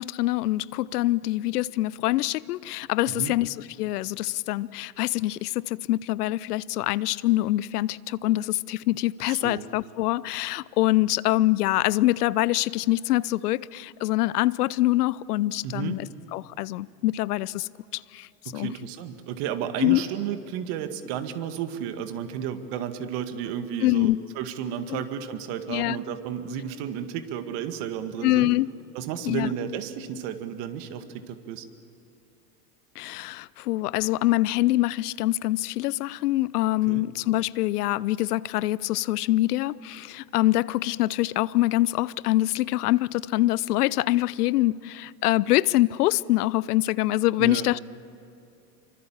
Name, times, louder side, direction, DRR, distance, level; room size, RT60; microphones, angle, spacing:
voice 1, 0.0-18.3 18.5-18.7 19.8-20.0 23.8-24.2 24.9-25.0 25.7-26.0 28.2-28.7 29.3-29.5 33.0-47.8, left 17 dB, 70° left, 0.6 m, -25 dB
voice 2, 3.1-3.4 9.3-9.7 15.6-16.0 18.5-28.5 28.9-31.7 36.9-37.1 47.4-47.7, right 9 dB, 55° right, 2.0 m, -32 dB
26.5 x 24.0 x 7.3 m
hypercardioid pair, 95°, 47 cm